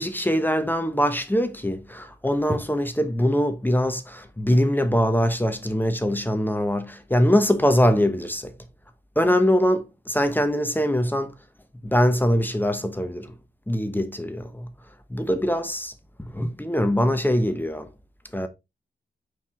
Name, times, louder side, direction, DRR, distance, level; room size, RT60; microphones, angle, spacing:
voice 1, 0.0-8.5 9.2-11.3 11.8-13.3 13.7-14.7 15.1-15.9 16.2-17.9 18.3-18.5, equal, 10° left, 1.1 m, -23 dB
5.3 x 4.7 x 3.8 m
cardioid pair, 55°, 18 cm